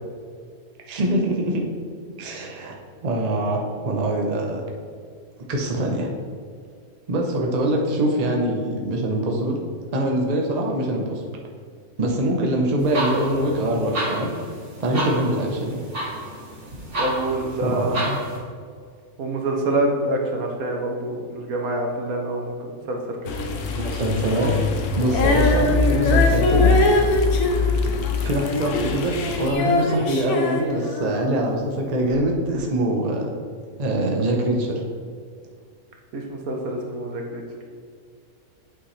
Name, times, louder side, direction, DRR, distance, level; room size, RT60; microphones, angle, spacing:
voice 1, 0.9-1.6 2.2-4.6 5.5-6.1 7.1-9.6 9.9-11.2 12.0-14.3 14.8-15.8 17.6-18.2 23.8-24.6 25.0-26.8 28.2-33.3 33.8-34.8, right 1 dB, 30° right, 0 dB, 0.8 m, -24 dB
sound 1, 12.8-18.4, right 1 dB, 55° right, 2.1 m, -31 dB
voice 2, 15.0-15.4 17.0-18.0 19.2-23.0 32.1-32.2 36.1-37.4, right 1 dB, 75° right, 1 dB, 1.4 m, -26 dB
sound 2, 23.2-29.5, left 5 dB, 65° left, 1.0 m, -23 dB
Female singing, 25.1-31.4 32.1-32.2, left 1 dB, 85° left, 1.3 m, -23 dB
8.7 x 5.9 x 3.2 m, 2.1 s
omnidirectional pair, 1.6 m